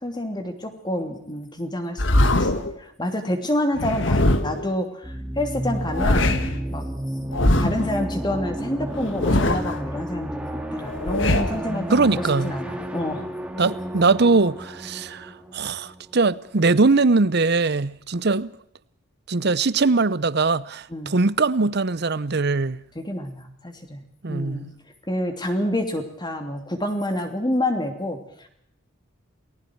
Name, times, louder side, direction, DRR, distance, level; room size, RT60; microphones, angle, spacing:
voice 1, 0.0-2.5 2.8-6.9 7.6-13.2 20.9-21.1 22.9-24.0 24.3-24.7 25.1-28.2, left 1 dB, 20° left, 2.9 m, -28 dB
sound 1, 2.0-2.7 3.8-4.7 5.7-6.6 7.3-7.9 8.9-9.8 10.8-11.6, left 1 dB, 65° left, 1.7 m, -21 dB
sound 2, 5.0-16.6, equal, 5° right, 2.2 m, -32 dB
voice 2, 11.9-12.6 13.6-18.5 19.3-22.8 24.2-24.7, right 3 dB, 55° right, 0.8 m, -21 dB
28.5 x 20.0 x 4.7 m
head